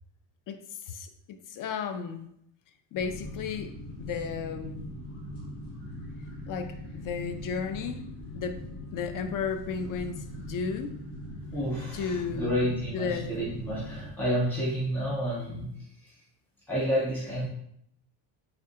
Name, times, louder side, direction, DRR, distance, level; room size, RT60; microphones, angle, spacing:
voice 1, 0.5-1.1 1.5-2.3 2.9-3.7 4.0-4.8 6.5-8.6 8.9-11.0 11.9-12.5 12.9-13.3, left 6 dB, 45° left, 8 dB, 0.4 m, -34 dB
sound 1, 2.9-14.1, left 1 dB, 80° left, 1.2 m, -41 dB
voice 2, 11.5-16.2 16.7-17.5, equal, 5° left, -8 dB, 1.4 m, -30 dB
3.5 x 3.3 x 2.7 m, 0.73 s
cardioid pair, 130°, 50 cm